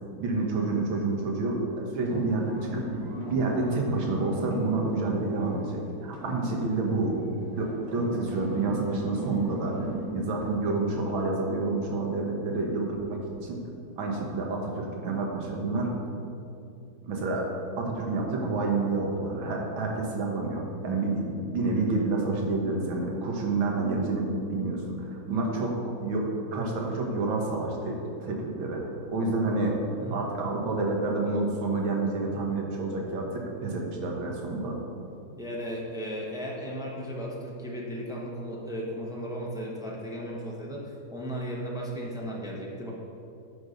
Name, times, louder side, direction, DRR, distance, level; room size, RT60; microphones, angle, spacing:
voice 1, 0.2-2.9 3.3-7.1 7.6-13.6 14.0-16.0 17.0-17.5 17.8-28.8 29.1-29.8 30.1-34.8, right 3 dB, 85° right, 0 dB, 2.0 m, -29 dB
sound 1, 2.0-5.8 6.1-10.1, right 1 dB, 60° right, 1.9 m, -36 dB
voice 2, 35.4-42.9, equal, 5° right, -4 dB, 0.3 m, -35 dB
10.5 x 4.1 x 5.1 m, 2.6 s
omnidirectional pair, 2.1 m